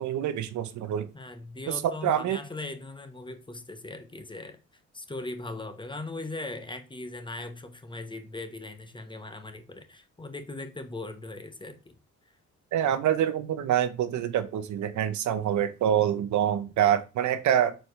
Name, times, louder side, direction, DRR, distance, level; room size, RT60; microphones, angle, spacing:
voice 1, 0.0-1.1 1.7-1.8 2.0-2.4 12.7-17.7, right 10 dB, 70° right, 0.9 m, -26 dB
voice 2, 1.1-4.6 4.9-11.9, left 2 dB, 15° left, 1.1 m, -39 dB
6.8 x 4.4 x 3.3 m
cardioid pair, 90°, 30 cm